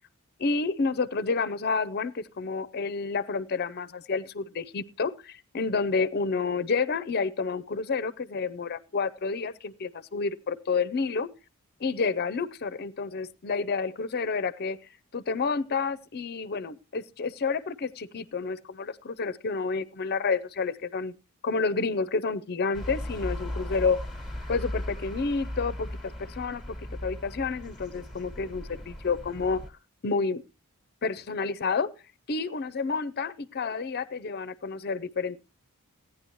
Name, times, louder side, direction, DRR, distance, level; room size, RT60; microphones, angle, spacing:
voice 1, 0.4-11.3 11.8-14.8 15.1-21.1 21.4-24.0 24.5-26.8 27.0-29.6 30.0-30.4 31.0-31.9 32.3-35.4, left 4 dB, 45° left, 0.5 m, -29 dB
sound 1, 22.7-29.7, left 1 dB, ahead, 1.3 m, -37 dB
16.0 x 9.7 x 3.0 m
head